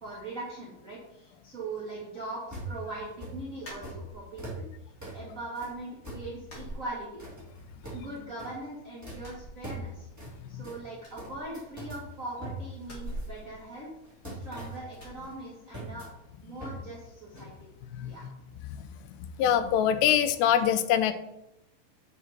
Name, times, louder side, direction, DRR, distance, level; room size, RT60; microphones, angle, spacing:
voice 1, 0.0-4.6 5.1-7.1 7.9-10.1 10.5-13.9 14.3-16.1 16.4-17.5 18.0-18.2, right 2 dB, 30° right, -6 dB, 1.5 m, -40 dB
sound 1, 2.5-3.4 3.8-4.0 4.4-4.7 5.0-5.2 5.5-5.7 6.0-6.7 7.2-8.1 8.4-8.7 9.0-9.2 9.6-9.9 10.2-10.3 10.6-10.8 11.2-12.0 12.4-13.6 14.0-15.4 15.7-16.1 16.6-16.8 17.1-17.2 17.3-17.5, right 1 dB, 5° right, 1.8 m, -41 dB
sound 2, 3.6-4.5 4.9-5.6 5.8-6.0 6.4-7.6 7.9-8.7 9.1-10.3 10.5-10.6 11.0-12.1 12.8-14.5 15.0-15.2, right 1 dB, 25° left, 2.9 m, -45 dB
voice 2, 19.4-21.1, left 9 dB, 80° left, 10 dB, 2.7 m, -24 dB
8.4 x 8.3 x 4.4 m, 0.89 s
omnidirectional pair, 5.1 m